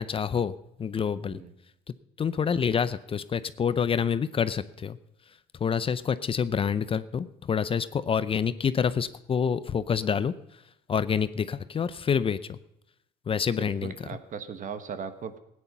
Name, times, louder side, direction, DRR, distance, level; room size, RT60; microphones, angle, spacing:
voice 1, 0.0-1.4 2.2-5.0 5.6-10.3 10.9-12.6 13.3-13.9, left 7 dB, 35° left, 15 dB, 0.6 m, -27 dB
voice 2, 13.6-15.4, right 6 dB, 50° right, 11 dB, 1.4 m, -38 dB
16.0 x 9.7 x 5.6 m, 0.80 s
cardioid pair, 110°, 17 cm